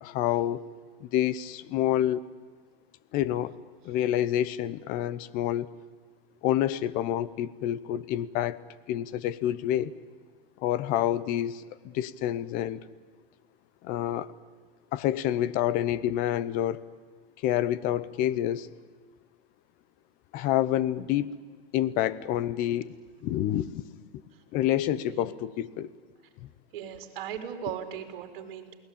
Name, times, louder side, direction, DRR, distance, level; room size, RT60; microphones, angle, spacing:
voice 1, 0.0-0.6 1.0-2.2 3.1-3.5 3.8-5.7 6.4-8.6 8.9-9.9 10.6-12.8 13.8-14.3 14.9-16.8 17.4-18.7 20.3-21.3 21.7-22.9 23.2-24.2 24.5-25.9 26.4-26.5, left 12 dB, 30° left, 17 dB, 0.8 m, -28 dB
voice 2, 26.7-28.7, right 9 dB, 55° right, 5 dB, 4.0 m, -37 dB
29.0 x 19.5 x 8.7 m, 1.5 s
supercardioid pair, 155°, 30 cm